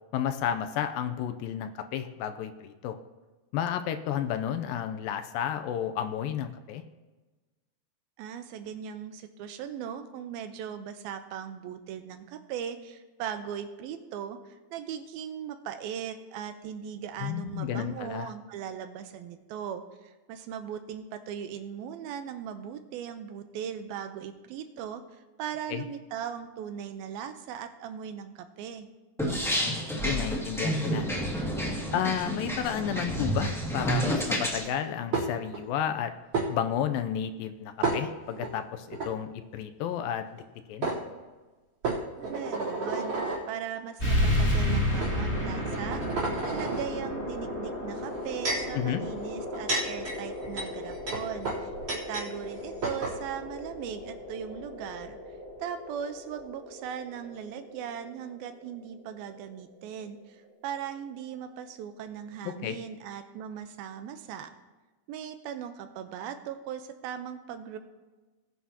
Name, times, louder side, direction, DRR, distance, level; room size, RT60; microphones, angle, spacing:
voice 1, 0.1-3.0 3.5-6.8 17.2-18.3 25.7-25.8 29.5-31.1 31.9-36.1 36.5-40.4 40.7-40.9 48.7-49.0 62.4-62.8, left 9 dB, 80° left, 9 dB, 2.2 m, -32 dB
voice 2, 8.2-28.9 42.3-43.2 43.5-46.0 46.4-51.7 52.1-55.2 55.6-64.5 65.1-67.8, right 8 dB, 85° right, 9 dB, 2.6 m, -39 dB
sound 1, 29.2-34.6, equal, ahead, 0.6 m, -30 dB
sound 2, 35.1-35.6 36.3-36.5 37.8-38.5 38.9-39.1 40.4-40.5 40.8-41.0 41.8-43.4 44.2-44.4 45.0-45.1 45.7-46.8 48.0-48.7 49.4-52.3 52.5-52.6 52.8-53.2, right 3 dB, 40° right, 4.4 m, -31 dB
sound 3, 44.0-59.1, left 1 dB, 20° left, 2.3 m, -33 dB
20.0 x 9.5 x 2.9 m, 1.2 s
omnidirectional pair, 4.3 m